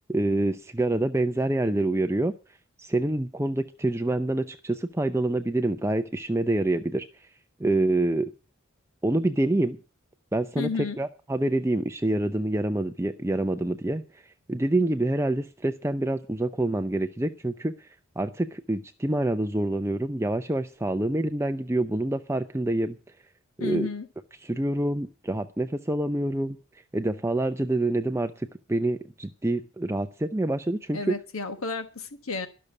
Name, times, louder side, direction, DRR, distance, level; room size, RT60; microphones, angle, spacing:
voice 1, 0.1-2.3 2.8-7.1 7.6-8.3 9.0-9.8 10.3-10.7 11.0-14.0 14.5-17.7 18.2-23.0 23.6-23.9 24.4-26.6 26.9-31.1, right 1 dB, 10° right, 0.6 m, -26 dB
voice 2, 10.6-11.0 23.6-24.1 30.9-32.5, left 4 dB, 80° left, 1.2 m, -32 dB
12.0 x 6.7 x 9.8 m
head